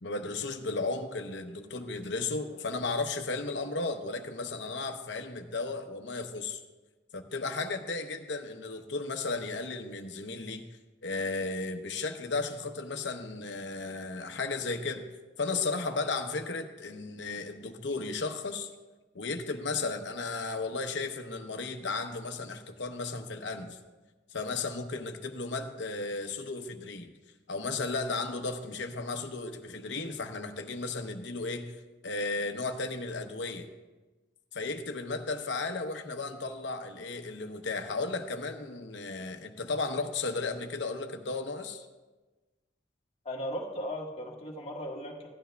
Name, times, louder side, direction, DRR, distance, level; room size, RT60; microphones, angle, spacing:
voice 1, 0.0-6.6 7.1-10.6 11.0-15.0 15.4-18.7 19.1-23.8 24.3-27.1 27.5-31.7 32.0-33.7 34.5-41.9, left 3 dB, 85° left, 6 dB, 0.9 m, -34 dB
voice 2, 43.2-45.3, equal, 35° left, -1 dB, 1.5 m, -37 dB
16.0 x 11.5 x 2.3 m, 1.2 s
head